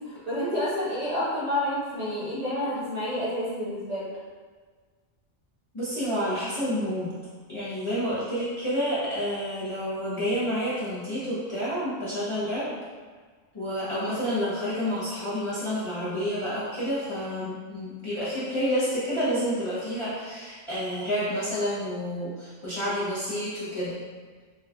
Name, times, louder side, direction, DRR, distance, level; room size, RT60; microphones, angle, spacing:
voice 1, 0.0-4.1 14.1-14.2, left 1 dB, 35° right, -10 dB, 0.9 m, -29 dB
voice 2, 5.7-7.1 7.5-12.8 13.5-24.0, equal, 30° left, -12 dB, 0.7 m, -29 dB
3.3 x 3.0 x 2.3 m, 1.5 s
omnidirectional pair, 1.2 m